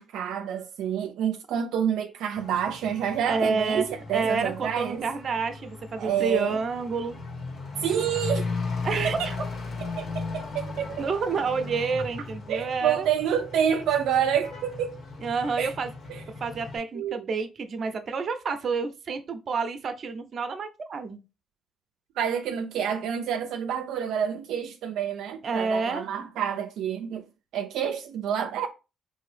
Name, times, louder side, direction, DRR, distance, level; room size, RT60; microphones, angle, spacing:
voice 1, 0.0-5.1 6.0-6.6 7.8-8.5 9.0-9.3 10.0-11.0 12.5-15.0 15.6-15.7 16.1-16.2 16.9-17.3 22.2-27.3 27.5-28.7, right 8 dB, 85° right, 0.5 m, -28 dB
Truck / Accelerating revving vroom, 2.3-16.8, left 3 dB, 60° left, 1.6 m, -37 dB
voice 2, 3.3-7.1 8.8-9.4 11.0-13.1 15.2-15.9 16.4-21.2 25.4-26.1, right 4 dB, 50° right, 0.8 m, -29 dB
4.7 x 2.7 x 3.3 m
cardioid pair, 90°, 0 cm